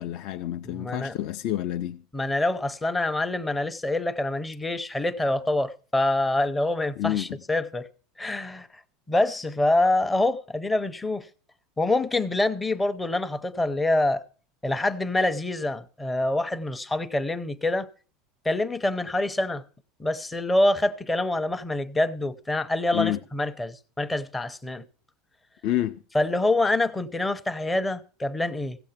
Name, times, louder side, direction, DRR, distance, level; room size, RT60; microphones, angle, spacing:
voice 1, 0.0-2.0 7.0-7.4 22.9-23.2 25.6-26.0, left 13 dB, 50° left, 0.5 m, -28 dB
voice 2, 0.7-1.1 2.1-7.9 8.2-8.7 9.1-11.3 11.8-14.2 14.6-17.9 18.4-19.6 20.0-24.8 26.1-28.8, left 2 dB, 10° left, 0.7 m, -26 dB
15.5 x 7.7 x 5.8 m
cardioid pair, 170°, 0 cm